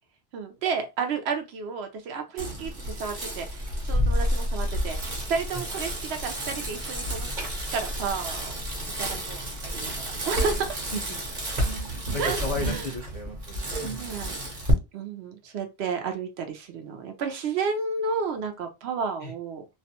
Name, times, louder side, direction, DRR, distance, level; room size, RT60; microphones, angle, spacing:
voice 1, 0.3-7.3 7.7-8.6 9.0-10.8 12.2-12.8 14.0-14.4 14.9-19.7, right 5 dB, 75° right, 0.8 m, -32 dB
Bicycle, 2.4-14.7, equal, 45° right, 1.0 m, -30 dB
voice 2, 11.8-14.0 19.2-19.3, left 2 dB, 45° left, 0.5 m, -35 dB
2.4 x 2.2 x 2.8 m
omnidirectional pair, 1.1 m